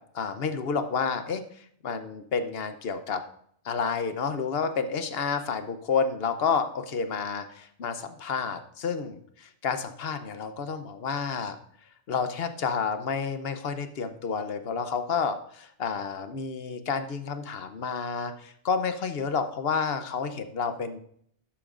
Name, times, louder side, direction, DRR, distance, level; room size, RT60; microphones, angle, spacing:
voice 1, 0.1-1.4 1.8-3.2 3.6-11.6 12.1-21.0, left 5 dB, 60° left, 9 dB, 1.0 m, -30 dB
12.0 x 8.6 x 2.5 m, 0.66 s
omnidirectional pair, 1.2 m